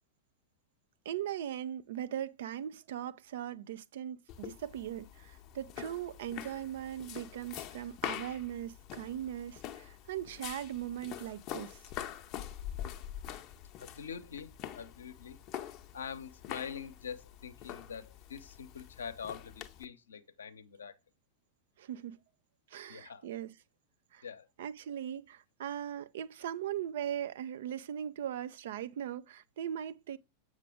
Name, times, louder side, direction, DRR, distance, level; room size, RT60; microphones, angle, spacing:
voice 1, 1.0-11.8 21.8-22.2 22.7-23.5 24.1-24.2 24.6-30.2, right 10 dB, 55° right, 0.5 m, -39 dB
sound 1, 4.3-19.9, left 11 dB, 40° left, 0.8 m, -45 dB
voice 2, 13.8-15.4 15.9-21.0 22.9-23.3 24.2-24.5, left 7 dB, 70° left, 0.8 m, -44 dB
7.5 x 6.4 x 3.5 m
figure-of-eight pair, 90°, 0 cm